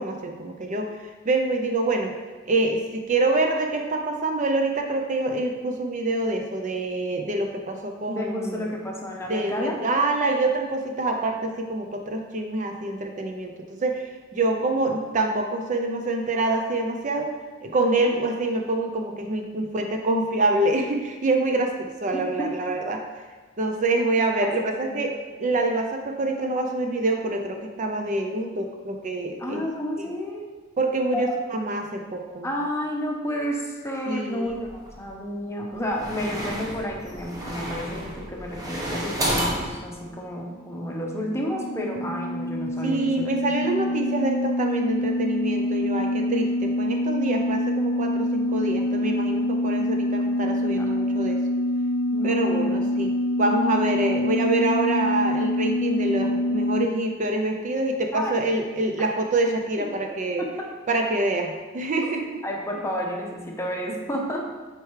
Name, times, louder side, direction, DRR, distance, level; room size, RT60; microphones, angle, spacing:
voice 1, 0.0-2.1 2.5-8.7 9.2-17.3 17.6-23.3 23.6-25.1 25.4-29.6 30.0-30.1 30.8-32.5 34.1-34.5 42.8-51.4 52.2-53.1 53.4-60.4 60.9-62.4, right 2 dB, 40° right, 3 dB, 0.5 m, -26 dB
voice 2, 8.1-9.8 17.8-18.1 22.1-22.5 24.4-24.9 29.4-30.4 31.1-31.3 32.4-43.8 50.8-50.9 52.1-52.7 53.1-53.2 58.1-58.4 59.8-59.9 60.4-60.5 62.4-64.4, equal, 15° left, -1 dB, 0.9 m, -31 dB
sound 1, 34.5-35.1 35.7-39.7, equal, 20° right, 1.0 m, -31 dB
sound 2, 40.7-56.9, left 1 dB, 75° left, 0.3 m, -26 dB
8.0 x 4.5 x 3.2 m, 1.3 s
head